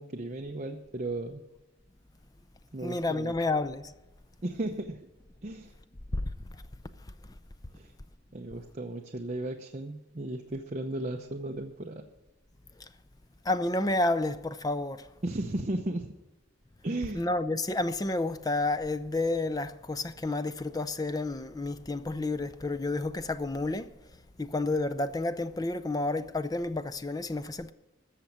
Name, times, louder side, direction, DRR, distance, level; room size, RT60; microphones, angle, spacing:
voice 1, 0.0-1.4 2.7-3.3 4.4-5.0 5.4-5.7 7.7-7.9 8.3-12.0 15.2-16.1 16.8-17.2, right 1 dB, 40° right, 0.8 m, -35 dB
voice 2, 2.8-3.9 6.1-6.6 7.3-7.4 12.8-12.9 13.4-15.1 17.1-27.7, left 2 dB, 20° left, 0.5 m, -30 dB
14.0 x 7.0 x 8.7 m
head